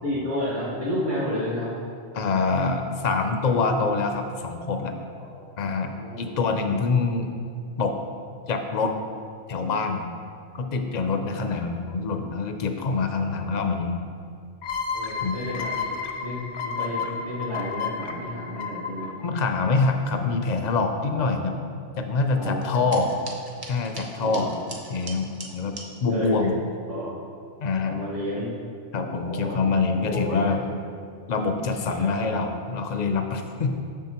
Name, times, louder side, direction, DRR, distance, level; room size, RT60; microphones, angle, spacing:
voice 1, 0.0-1.7 5.3-5.5 5.8-6.3 14.9-19.1 21.1-21.3 22.4-22.8 24.2-24.5 26.1-26.5 26.9-27.1 27.9-28.5 28.9-29.8 30.0-30.4 31.8-32.1, left 1 dB, 60° right, -10 dB, 1.9 m, -31 dB
voice 2, 2.1-5.0 5.6-7.3 7.8-8.0 8.5-8.9 9.5-10.1 10.5-14.0 15.2-15.4 19.2-21.5 22.0-23.1 23.7-24.5 24.9-26.6 27.6-28.0 28.9-30.6 31.3-33.8, left 4 dB, 55° left, 5 dB, 0.5 m, -25 dB
sound 1, 14.6-20.1, left 5 dB, 75° left, 0.9 m, -32 dB
sound 2, 22.6-25.9, right 2 dB, 25° right, 0.6 m, -41 dB
7.2 x 6.4 x 2.9 m, 2.3 s
omnidirectional pair, 1.1 m